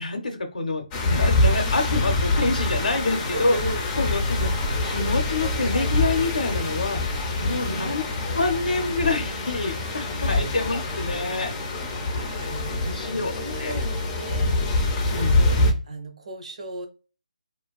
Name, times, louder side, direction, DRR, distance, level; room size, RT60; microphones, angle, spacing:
voice 1, 0.0-3.6 4.0-4.5 4.8-8.0 8.3-11.5 12.4-13.7 15.1-15.4, left 3 dB, 80° left, 4 dB, 0.6 m, -27 dB
sound 1, 0.9-15.7, left 2 dB, 15° left, 0.4 m, -25 dB
voice 2, 3.3-3.8 7.3-7.9 10.2-10.6 12.1-14.5 15.0-16.9, right 2 dB, 55° right, 4 dB, 0.7 m, -37 dB
2.4 x 2.2 x 2.2 m, 0.34 s
figure-of-eight pair, 155°, 4 cm